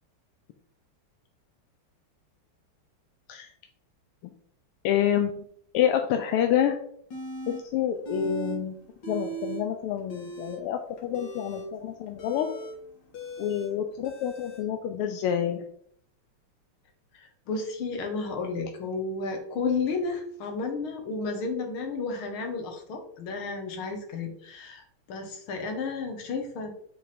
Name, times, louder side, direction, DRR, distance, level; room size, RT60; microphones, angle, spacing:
voice 1, 4.8-5.3 5.7-6.8 7.5-8.8 9.1-12.5 13.4-15.6, left 10 dB, 85° left, 5 dB, 1.6 m, -27 dB
sound 1, 7.1-7.6 8.0-8.6 8.9-9.6 10.0-14.6, right 3 dB, 55° left, 2.1 m, -38 dB
voice 2, 17.1-26.7, left 4 dB, 70° left, 3 dB, 2.0 m, -32 dB
8.7 x 3.4 x 4.2 m, 0.67 s
omnidirectional pair, 2.4 m